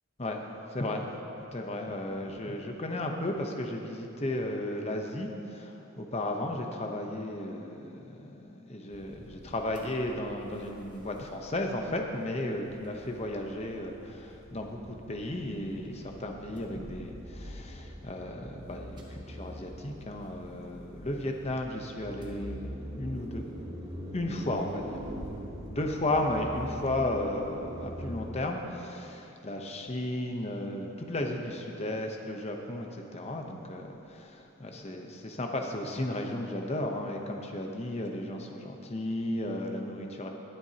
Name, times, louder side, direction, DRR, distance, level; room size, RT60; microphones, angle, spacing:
voice 1, 0.7-1.1 1.5-23.6 24.1-25.0 25.6-40.3, left 1 dB, 30° left, 3 dB, 0.8 m, -34 dB
sound 1, 8.9-28.3, equal, 20° right, 1.1 m, -44 dB
21.0 x 8.0 x 2.9 m, 3.0 s
head